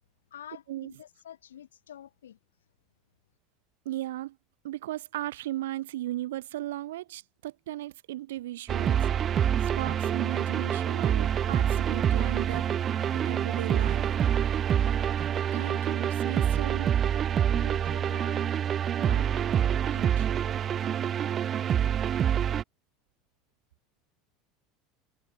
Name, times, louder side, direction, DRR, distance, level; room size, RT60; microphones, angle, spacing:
voice 1, 0.3-2.4 17.5-18.5 19.0-19.5, left 10 dB, 90° left, 2.2 m, -48 dB
voice 2, 3.8-4.4 4.6-9.1 9.6-12.7 13.1-14.1 15.5-17.0 19.0-19.4 19.9-20.3, right 15 dB, 80° right, 0.6 m, -36 dB
sound 1, 8.7-22.6, right 9 dB, 40° right, 0.8 m, -26 dB
hypercardioid pair, 85°, 0 cm